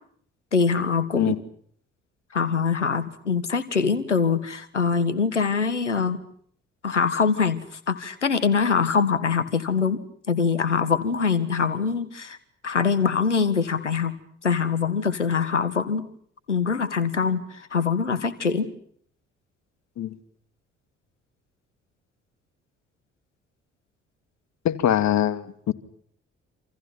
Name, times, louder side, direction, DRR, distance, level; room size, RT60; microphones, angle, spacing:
voice 1, 0.5-1.3 2.3-6.2 6.8-10.0 10.3-12.4 12.6-14.1 14.4-16.1 16.5-18.7, left 5 dB, 85° left, 1.7 m, -23 dB
voice 2, 24.6-25.7, left 11 dB, 50° left, 2.4 m, -23 dB
28.0 x 28.0 x 5.9 m
figure-of-eight pair, 45°, 35 cm